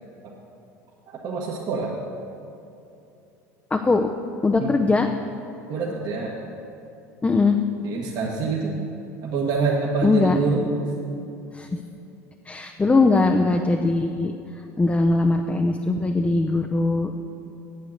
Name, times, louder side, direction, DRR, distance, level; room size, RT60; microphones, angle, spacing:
voice 1, 1.1-1.9 4.6-4.8 5.7-6.3 7.8-8.8 9.2-10.6, right 4 dB, 50° right, -3 dB, 1.4 m, -26 dB
voice 2, 3.7-4.1 4.4-5.1 7.2-7.6 10.0-10.4 11.5-11.7 12.5-14.4 14.8-17.2, left 3 dB, 15° left, 4 dB, 0.6 m, -20 dB
8.9 x 8.3 x 6.5 m, 2.8 s
hypercardioid pair, 75°, 9 cm